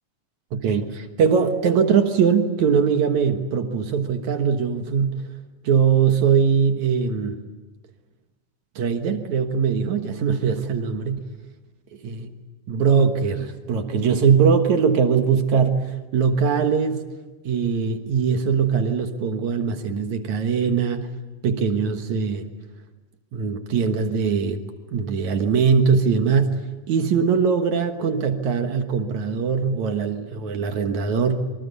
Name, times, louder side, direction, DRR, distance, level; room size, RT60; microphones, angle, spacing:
voice 1, 0.5-5.3 5.6-7.4 8.8-11.2 12.0-12.1 12.7-17.0 17.5-21.1 21.4-22.5 23.3-24.6 24.9-26.6 26.9-31.4, right 6 dB, 65° right, 6 dB, 2.7 m, -21 dB
26.5 x 25.0 x 8.2 m, 1.2 s
omnidirectional pair, 3.7 m